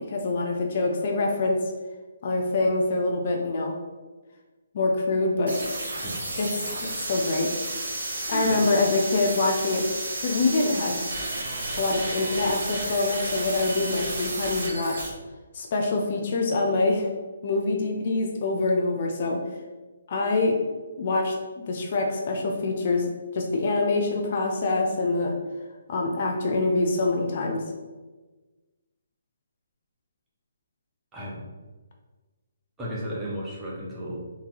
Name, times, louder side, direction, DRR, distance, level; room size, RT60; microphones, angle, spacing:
voice 1, 0.0-1.6 2.2-3.7 4.7-5.6 6.4-6.7 7.1-7.8 8.3-9.8 10.2-11.0 11.8-15.1 15.5-17.1 17.4-19.4 20.1-20.6 21.0-23.1 23.3-25.3 25.9-27.6, left 2 dB, 45° left, 1 dB, 0.5 m, -25 dB
sound 1, 5.5-15.1, right 2 dB, 65° right, 1.1 m, -32 dB
voice 2, 8.3-8.6 31.1-31.4 32.8-34.3, equal, 10° right, -6 dB, 0.7 m, -34 dB
3.8 x 2.7 x 2.9 m, 1.2 s
hypercardioid pair, 155°, 0 cm